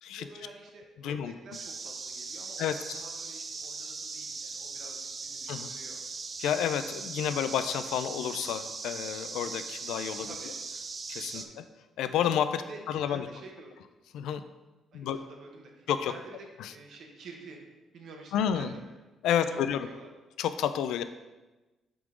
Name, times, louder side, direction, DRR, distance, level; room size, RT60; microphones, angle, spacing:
voice 1, 0.1-6.0 10.2-10.6 11.3-11.6 12.7-13.7 14.9-19.0 19.3-20.1, right 3 dB, 60° right, 2 dB, 1.1 m, -49 dB
voice 2, 1.0-1.3 2.6-2.8 5.5-5.7 6.4-10.3 11.1-11.6 12.0-13.3 14.1-14.4 14.9-15.2 15.9-16.1 16.6-16.7 18.3-18.7 19.2-19.9 20.4-21.0, left 9 dB, 90° left, 11 dB, 0.4 m, -30 dB
sound 1, 1.5-11.5, right 4 dB, 30° right, 0.4 m, -39 dB
7.7 x 3.7 x 3.7 m, 1.1 s
cardioid pair, 150°, 0 cm